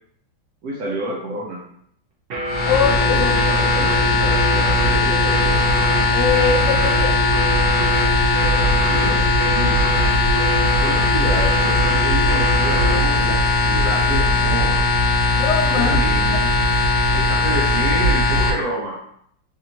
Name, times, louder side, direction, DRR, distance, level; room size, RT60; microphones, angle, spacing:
voice 1, 0.6-1.6 3.0-5.7 8.3-10.0 10.8-14.8 15.7-16.6 17.1-19.0, right 1 dB, 70° right, -2 dB, 1.0 m, -29 dB
sound 1, 2.3-13.1, left 1 dB, 85° right, 0.5 m, -25 dB
sound 2, 2.5-18.5, left 2 dB, 60° left, 1.1 m, -18 dB
voice 2, 2.6-3.3 3.7-3.9 6.1-7.2 15.3-16.0, left 6 dB, 85° left, 1 dB, 0.6 m, -22 dB
3.4 x 2.6 x 2.8 m, 0.69 s
omnidirectional pair, 2.0 m